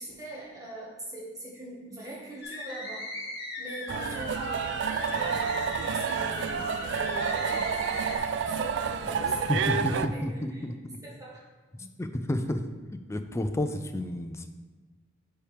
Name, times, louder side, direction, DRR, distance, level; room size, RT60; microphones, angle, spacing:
voice 1, 0.0-3.1 3.6-10.6 11.0-11.5, right 1 dB, 20° right, -5 dB, 1.6 m, -42 dB
sound 1, 2.4-8.2, left 2 dB, 55° left, 1.5 m, -38 dB
sound 2, 3.9-10.1, right 6 dB, 65° right, 0.3 m, -29 dB
voice 2, 9.5-10.7 11.7-12.6 13.1-14.5, left 1 dB, 15° left, 7 dB, 0.4 m, -30 dB
9.5 x 4.4 x 3.5 m, 1.3 s
head